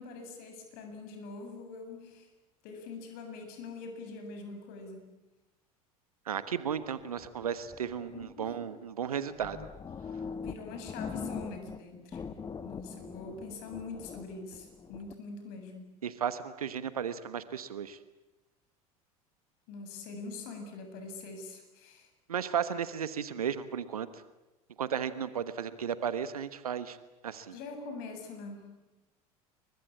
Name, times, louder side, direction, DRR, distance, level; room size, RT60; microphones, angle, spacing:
voice 1, 0.0-2.3 2.6-5.1 8.1-8.7 10.4-12.2 12.6-15.9 19.7-22.1 27.5-28.9, left 3 dB, 55° left, 6 dB, 7.7 m, -44 dB
voice 2, 6.3-9.7 16.0-18.0 22.3-24.1 24.8-27.0 27.2-27.6, right 8 dB, 75° right, 13 dB, 1.3 m, -34 dB
sound 1, 6.9-8.5 9.1-9.2 9.3-11.8 12.1-15.1, left 5 dB, 20° left, 1.3 m, -42 dB
28.5 x 23.5 x 8.7 m, 1.0 s
figure-of-eight pair, 75°, 19 cm